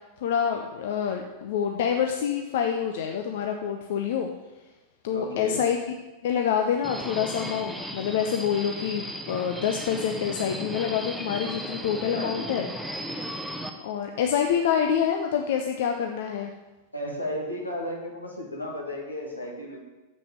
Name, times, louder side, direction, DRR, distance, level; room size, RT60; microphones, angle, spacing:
voice 1, 0.2-4.3 5.0-5.8 6.2-12.7 13.8-16.5, left 8 dB, 55° left, 4 dB, 0.7 m, -27 dB
voice 2, 5.1-5.6 12.2-12.5 16.9-19.8, left 1 dB, 85° left, -1 dB, 2.0 m, -34 dB
Subway metro underground, 6.8-13.7, equal, ahead, 0.9 m, -36 dB
7.6 x 6.4 x 7.2 m, 1.1 s
figure-of-eight pair, 90°, 0 cm